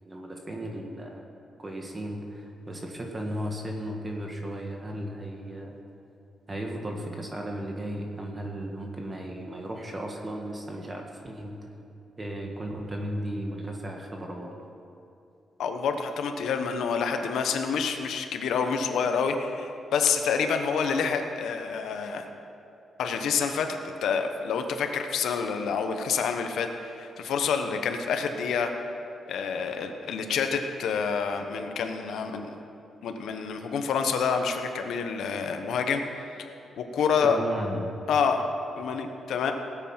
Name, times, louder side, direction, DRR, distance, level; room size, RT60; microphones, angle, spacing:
voice 1, 0.0-1.3 1.6-5.7 6.5-11.5 12.2-14.5 37.2-37.9, right 1 dB, 25° right, 1 dB, 1.5 m, -35 dB
voice 2, 15.6-22.3 23.0-28.7 29.3-32.6 33.0-36.0 36.8-37.4 38.1-38.4 38.8-39.5, left 6 dB, 85° left, 5 dB, 1.1 m, -28 dB
18.5 x 8.2 x 5.8 m, 2.8 s
cardioid pair, 115°, 0 cm